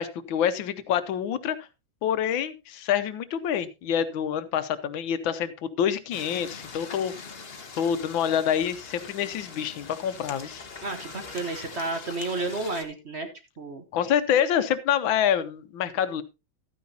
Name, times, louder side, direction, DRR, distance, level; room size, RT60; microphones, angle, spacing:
voice 1, 0.0-1.6 2.0-7.1 7.7-10.7 13.9-16.2, left 9 dB, 85° left, 12 dB, 1.6 m, -26 dB
sound 1, 6.1-12.8, left 5 dB, 35° left, 1.2 m, -42 dB
voice 2, 10.8-13.3 13.6-13.8, right 2 dB, 40° right, 6 dB, 1.2 m, -31 dB
13.0 x 9.4 x 2.8 m, 0.26 s
omnidirectional pair, 2.1 m